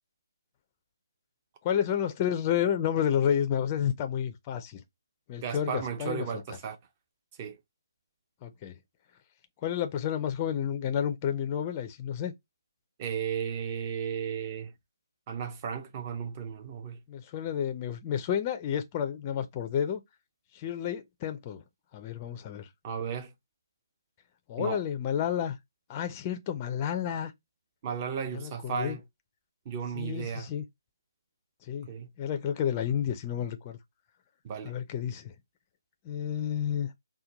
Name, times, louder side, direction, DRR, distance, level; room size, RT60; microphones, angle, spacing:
voice 1, 1.6-4.8 5.3-6.3 8.4-8.8 9.6-12.3 17.1-20.0 20.5-21.6 21.9-22.7 24.5-25.6 25.9-27.3 28.3-29.0 30.0-30.6 31.7-31.9 32.2-33.8 34.6-35.3 36.0-36.9, left 9 dB, 20° left, 0.4 m, -30 dB
voice 2, 5.4-6.8 7.4-7.6 13.0-14.7 15.3-17.0 22.8-23.3 24.6-24.8 27.8-29.0 29.7-30.5 31.9-32.1 34.4-34.7, right 7 dB, 25° right, 0.6 m, -34 dB
4.3 x 2.2 x 3.8 m
hypercardioid pair, 165°, 2 cm